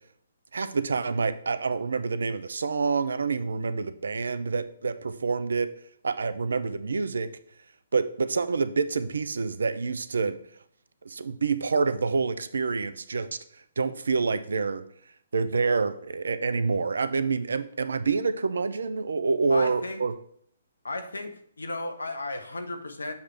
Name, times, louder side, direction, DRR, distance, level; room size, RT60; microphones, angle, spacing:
voice 1, 0.5-5.7 6.0-7.3 7.9-10.4 11.0-13.4 13.8-14.8 15.3-20.1, right 4 dB, 70° right, 12 dB, 0.5 m, -27 dB
voice 2, 19.5-20.0 20.8-23.1, left 2 dB, 80° left, 6 dB, 0.9 m, -34 dB
7.1 x 3.2 x 5.8 m, 0.64 s
figure-of-eight pair, 135°, 0 cm